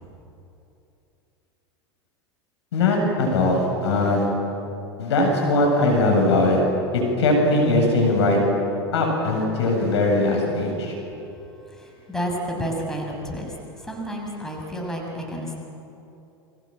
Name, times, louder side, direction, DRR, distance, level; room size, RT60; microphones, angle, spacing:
voice 1, 2.7-4.3 5.0-6.6 6.9-8.4 8.9-10.9, left 2 dB, 75° left, 1 dB, 7.4 m, -20 dB
voice 2, 11.7-13.5 13.8-15.6, equal, 5° left, -1 dB, 6.5 m, -30 dB
29.0 x 24.0 x 7.8 m, 2.8 s
hypercardioid pair, 90°, 14 cm